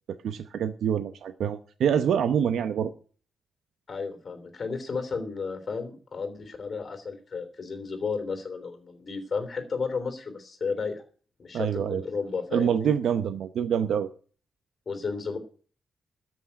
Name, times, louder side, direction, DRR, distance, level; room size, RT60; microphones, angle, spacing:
voice 1, 0.1-2.9 11.5-12.0 12.5-14.1, right 8 dB, 70° right, 0.8 m, -26 dB
voice 2, 3.9-11.0 11.4-12.9 14.8-15.4, left 4 dB, 30° left, 3.2 m, -33 dB
13.0 x 6.1 x 9.8 m
wide cardioid pair, 165°, 0 cm